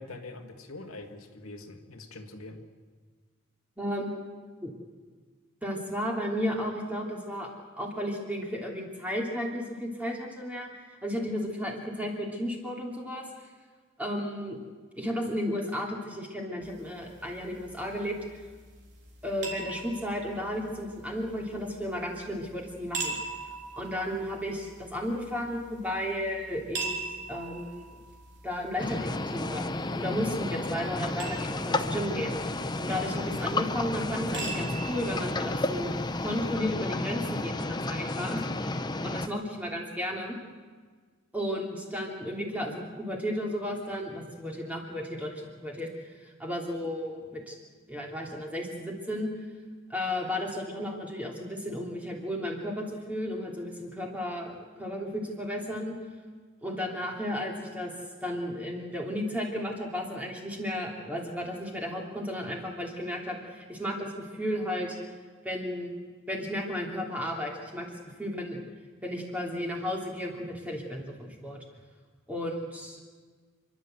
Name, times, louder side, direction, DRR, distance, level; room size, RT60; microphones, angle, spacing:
voice 1, 0.0-2.6, left 2 dB, 85° left, 3 dB, 2.1 m, -44 dB
voice 2, 3.8-4.2 4.6-4.7 5.6-7.5 7.8-13.2 14.0-14.6 15.0-18.4 19.2-23.2 23.8-26.9 27.3-27.9 28.4-32.4 32.8-35.9 36.2-40.4 41.3-45.9 46.2-47.6 47.9-49.3 49.9-56.0 56.6-57.9 58.2-65.0 65.4-65.9 66.3-68.6 69.0-71.6 72.3-73.0, equal, 5° right, -1 dB, 3.1 m, -34 dB
sound 1, 16.6-36.6, right 3 dB, 55° right, 3.7 m, -43 dB
sound 2, 28.8-39.3, left 2 dB, 20° left, 0.7 m, -32 dB
29.5 x 12.0 x 8.0 m, 1.5 s
head